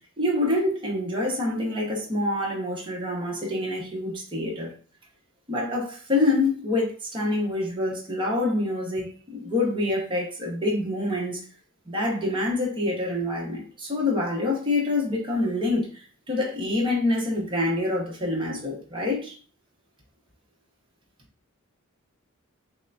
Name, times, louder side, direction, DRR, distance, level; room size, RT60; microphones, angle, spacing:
voice 1, 0.2-4.7 5.5-11.4 11.9-19.3, left 2 dB, 25° right, -3 dB, 1.1 m, -26 dB
5.9 x 2.2 x 2.5 m, 0.39 s
head